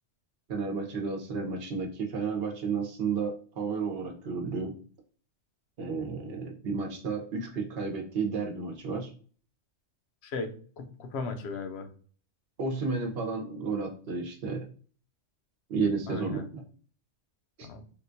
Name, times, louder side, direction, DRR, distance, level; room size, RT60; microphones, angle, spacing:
voice 1, 0.5-4.7 5.8-9.1 12.6-14.6 15.7-16.6 17.6-17.7, right 4 dB, 55° right, 2 dB, 0.9 m, -32 dB
voice 2, 10.8-11.9 16.1-16.5 17.6-17.8, left 4 dB, 65° left, 6 dB, 0.8 m, -36 dB
3.6 x 2.3 x 2.5 m, 0.43 s
omnidirectional pair, 1.3 m